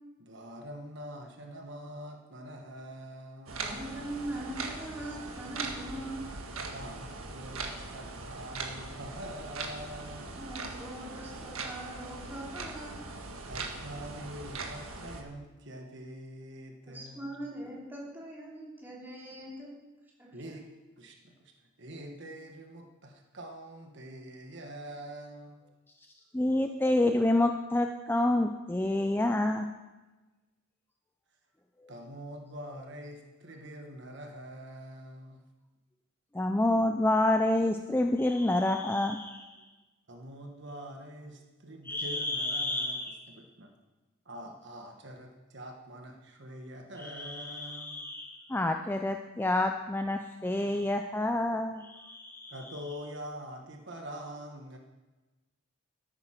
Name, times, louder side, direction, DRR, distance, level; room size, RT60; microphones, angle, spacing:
voice 1, 0.2-3.8 6.7-10.3 13.5-17.4 20.3-20.7 21.0-21.5 21.8-25.6 31.9-35.4 40.1-43.0 43.3-43.7 44.2-48.0 52.5-54.8, equal, 55° right, 3 dB, 1.3 m, -45 dB
sound 1, 3.5-15.2, right 3 dB, 90° right, 1.5 m, -40 dB
voice 2, 3.6-6.2 10.2-13.0 16.9-19.8 20.2-20.3, right 1 dB, 10° right, -5 dB, 3.1 m, -41 dB
voice 3, 26.3-29.7 36.3-39.6 41.9-43.2 47.0-52.5, left 1 dB, 10° left, 5 dB, 0.4 m, -28 dB
13.5 x 8.9 x 5.9 m, 1.2 s
head